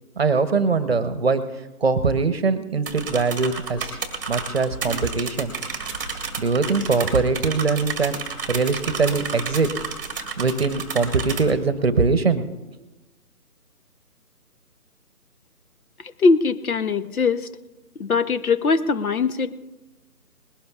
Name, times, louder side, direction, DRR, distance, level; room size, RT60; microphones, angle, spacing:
voice 1, 0.2-1.4 1.8-4.0 4.3-5.5 6.4-8.2 8.5-9.7 10.4-12.4, right 4 dB, 40° right, 12 dB, 0.9 m, -22 dB
sound 1, 2.9-11.4, right 5 dB, 15° right, 1.1 m, -31 dB
voice 2, 16.2-17.5 18.0-19.5, left 4 dB, 65° left, 12 dB, 0.9 m, -21 dB
20.0 x 17.5 x 2.4 m, 1.1 s
figure-of-eight pair, 160°, 46 cm